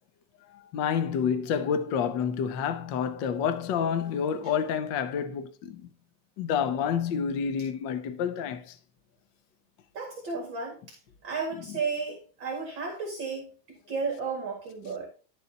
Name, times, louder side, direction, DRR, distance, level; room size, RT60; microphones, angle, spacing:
voice 1, 0.5-5.9 6.4-8.8, left 7 dB, 90° left, 1.0 m, -29 dB
voice 2, 9.9-11.0 11.2-15.1, right 4 dB, 40° right, 2.6 m, -33 dB
12.0 x 5.5 x 4.0 m
omnidirectional pair, 3.4 m